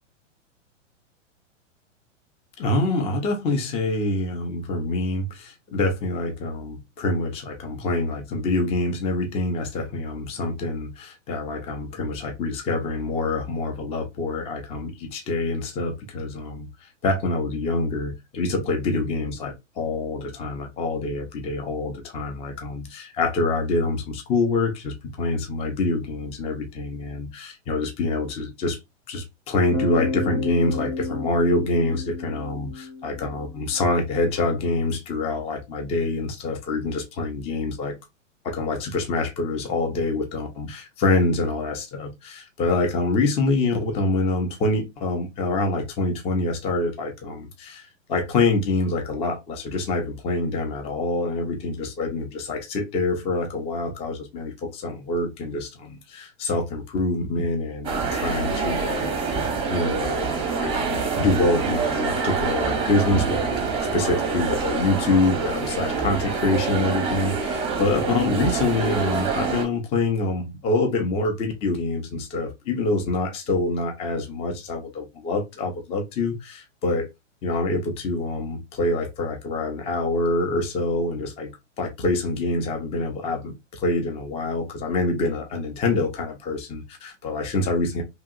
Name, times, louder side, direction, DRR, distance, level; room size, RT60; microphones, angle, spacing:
voice 1, 2.6-16.7 17.0-28.8 29.1-37.9 38.4-59.2 59.7-60.3 60.6-77.1 77.4-81.5 81.8-88.0, left 2 dB, 15° left, 0.5 m, -26 dB
Bass guitar, 29.7-33.7, left 3 dB, 75° left, 1.5 m, -31 dB
sound 1, 57.8-69.6, right 4 dB, 15° right, 0.7 m, -26 dB
2.7 x 2.7 x 2.4 m
hypercardioid pair, 125°, 38 cm